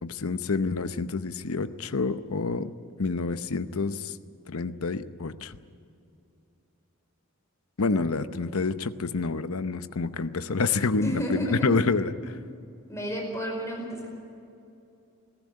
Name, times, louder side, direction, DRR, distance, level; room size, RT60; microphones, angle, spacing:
voice 1, 0.0-2.7 3.0-4.2 4.5-5.6 7.8-12.3, left 4 dB, 80° left, 12 dB, 0.8 m, -28 dB
voice 2, 11.0-11.7 12.9-14.1, equal, 15° left, 0 dB, 4.9 m, -31 dB
21.5 x 14.5 x 9.7 m, 2.6 s
head